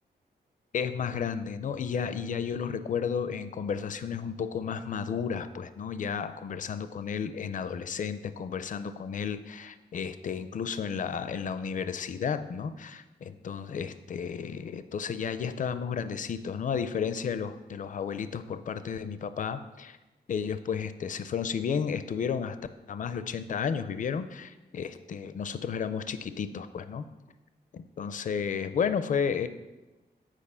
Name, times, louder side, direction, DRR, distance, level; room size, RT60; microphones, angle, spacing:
voice 1, 0.7-20.0 20.3-22.6 22.9-27.1 27.7-29.5, left 7 dB, 50° left, 12 dB, 0.4 m, -32 dB
9.0 x 5.0 x 5.5 m, 1.1 s
wide cardioid pair, 165°, 17 cm